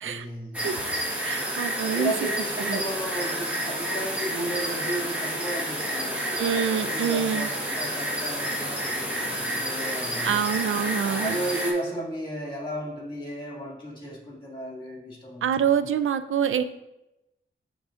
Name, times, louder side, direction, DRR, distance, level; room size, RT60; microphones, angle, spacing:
voice 1, 0.0-0.8 1.9-10.4 11.0-15.6, right 1 dB, 25° left, -2 dB, 2.0 m, -34 dB
sound 1, 0.5-11.7, equal, 5° right, 1.3 m, -30 dB
voice 2, 1.2-2.1 2.7-2.8 6.4-7.5 10.2-11.4 15.4-16.6, right 8 dB, 85° right, 11 dB, 0.4 m, -26 dB
10.5 x 3.9 x 2.5 m, 0.93 s
wide cardioid pair, 105°, 20 cm